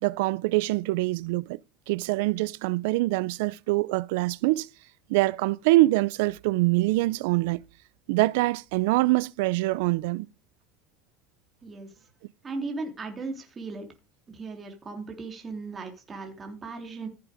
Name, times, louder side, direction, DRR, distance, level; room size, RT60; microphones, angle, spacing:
voice 1, 0.0-1.6 1.9-4.7 5.1-7.6 8.1-10.3, right 20 dB, 80° right, 0.6 m, -24 dB
voice 2, 11.6-11.9 12.4-13.9 14.3-17.1, right 3 dB, 20° right, 3.2 m, -37 dB
15.0 x 7.8 x 5.1 m
supercardioid pair, 135°, 0 cm